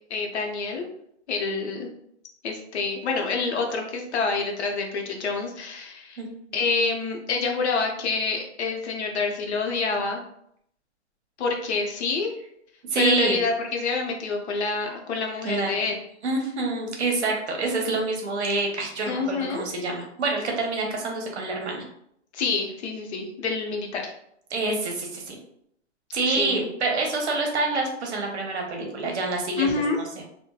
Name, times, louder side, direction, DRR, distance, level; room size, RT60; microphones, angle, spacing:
voice 1, 0.1-0.9 1.3-1.9 2.4-6.2 6.5-10.2 11.4-12.3 13.0-16.0 19.1-19.6 22.3-24.1 26.3-26.7 29.6-30.0, left 4 dB, 65° left, 2 dB, 0.7 m, -27 dB
voice 2, 12.9-13.4 15.4-15.7 16.2-21.8 24.5-25.4 26.1-29.7, right 3 dB, 65° right, 1 dB, 0.9 m, -26 dB
2.8 x 2.1 x 2.2 m, 0.71 s
hypercardioid pair, 155°, 36 cm